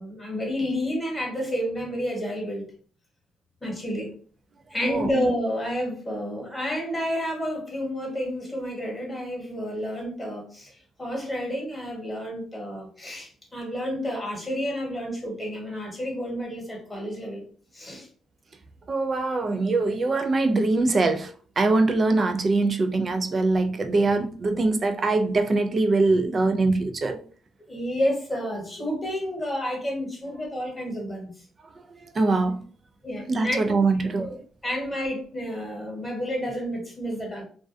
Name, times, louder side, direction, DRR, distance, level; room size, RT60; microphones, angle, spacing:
voice 1, 0.0-2.6 3.6-4.1 4.7-17.4 17.7-18.1 24.5-24.7 27.7-31.4 33.0-33.8 34.2-34.4 34.6-37.4, equal, 15° left, 1.2 m, -30 dB
voice 2, 18.9-27.2 32.1-32.6 33.3-34.3, right 3 dB, 40° right, 0.4 m, -23 dB
2.3 x 2.2 x 2.5 m
cardioid pair, 90°, 0 cm